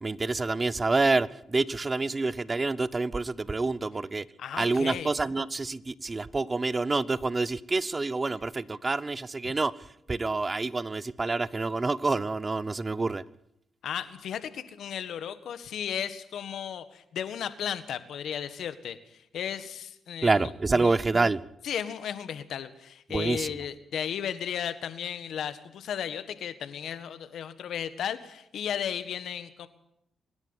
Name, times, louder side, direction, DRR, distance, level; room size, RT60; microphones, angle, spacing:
voice 1, 0.0-4.2 4.6-9.7 10.1-13.2 20.2-21.4 23.1-23.5, right 3 dB, 30° right, 19 dB, 0.9 m, -27 dB
voice 2, 4.4-5.1 13.8-20.5 20.8-20.9 21.6-29.7, left 9 dB, 75° left, 11 dB, 1.6 m, -35 dB
25.0 x 10.5 x 9.8 m, 0.78 s
cardioid pair, 60°, 0 cm